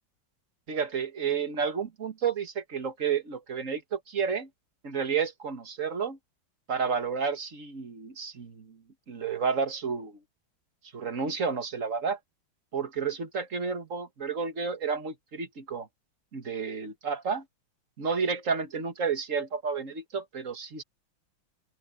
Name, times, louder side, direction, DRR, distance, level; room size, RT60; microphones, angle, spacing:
voice 1, 0.7-4.5 4.8-6.2 6.7-8.8 9.1-10.2 10.9-12.2 12.7-15.9 16.3-17.4 18.0-20.8, right 6 dB, 40° right, 1.9 m, -31 dB
open air
omnidirectional pair, 2.2 m